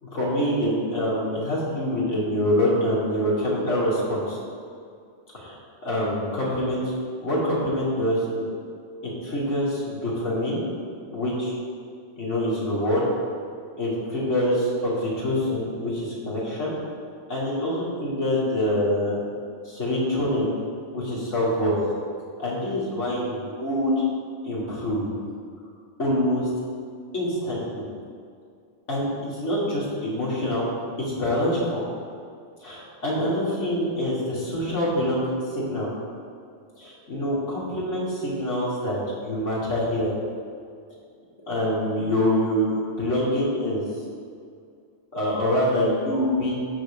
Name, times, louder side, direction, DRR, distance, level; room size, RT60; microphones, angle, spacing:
voice 1, 0.0-4.4 5.3-5.6 5.8-6.8 7.2-8.4 9.0-10.6 11.1-11.6 12.2-13.0 13.8-16.7 17.3-19.2 19.6-20.5 20.9-21.8 22.4-24.0 24.4-25.1 26.0-26.5 27.1-27.8 28.9-30.7 31.0-31.8 32.6-35.9 36.7-40.1 41.5-43.8 45.1-46.6, equal, 75° left, -7 dB, 3.0 m, -25 dB
14.5 x 4.9 x 5.1 m, 2.3 s
omnidirectional pair, 1.3 m